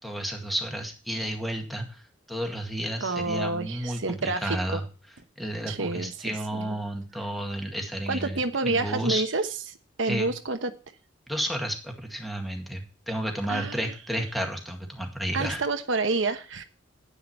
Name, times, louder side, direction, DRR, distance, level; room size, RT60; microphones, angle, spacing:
voice 1, 0.0-4.8 5.4-9.2 10.1-10.3 11.3-15.6, equal, ahead, 2 dB, 2.0 m, -32 dB
voice 2, 3.0-4.8 5.7-6.8 8.1-9.5 10.0-10.7 13.5-13.9 15.3-16.6, right 3 dB, 90° right, 7 dB, 1.1 m, -28 dB
9.7 x 9.5 x 4.4 m, 0.34 s
head